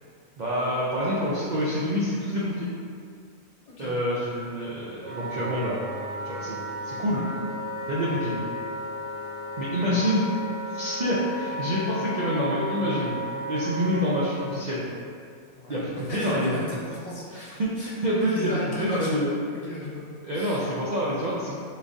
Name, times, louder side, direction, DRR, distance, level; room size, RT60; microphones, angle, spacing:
voice 1, 0.4-2.7 3.8-5.8 6.2-6.6 6.8-7.2 7.9-8.4 9.6-10.3 10.7-13.2 13.5-14.8 15.7-16.6 17.3-19.3 20.2-21.6, equal, 80° right, -8 dB, 0.4 m, -27 dB
Wind instrument woodwind instrument, 5.0-14.4, equal, 35° right, 1.5 m, -34 dB
Bowed string instrument, 5.3-10.5, left 2 dB, 65° left, 1.0 m, -47 dB
voice 2, 15.5-17.9 18.3-19.4 19.6-20.0 20.3-20.7, left 1 dB, 40° left, -6 dB, 0.6 m, -36 dB
3.9 x 3.5 x 2.6 m, 2.2 s
omnidirectional pair, 1.5 m